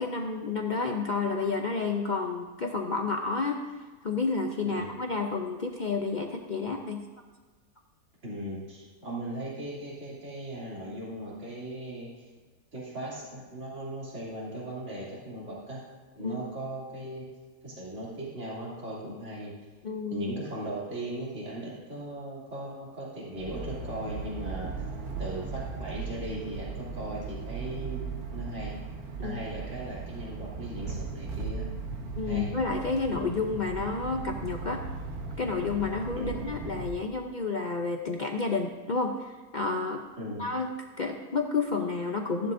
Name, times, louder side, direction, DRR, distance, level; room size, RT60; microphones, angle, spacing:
voice 1, 0.0-7.0 16.2-16.4 19.8-20.3 29.2-29.4 32.2-34.8 35.4-40.0 40.4-42.5, left 4 dB, 55° left, 2 dB, 0.5 m, -30 dB
voice 2, 8.2-12.2 12.7-15.8 16.1-17.3 17.6-19.5 20.1-24.7 25.2-28.7 29.2-31.7 32.3-32.5 36.2-36.5 40.2-40.5, right 1 dB, 45° right, -6 dB, 3.1 m, -38 dB
sound 1, 23.3-36.9, right 4 dB, 65° right, 1.5 m, -37 dB
15.0 x 11.0 x 2.6 m, 1.3 s
omnidirectional pair, 1.7 m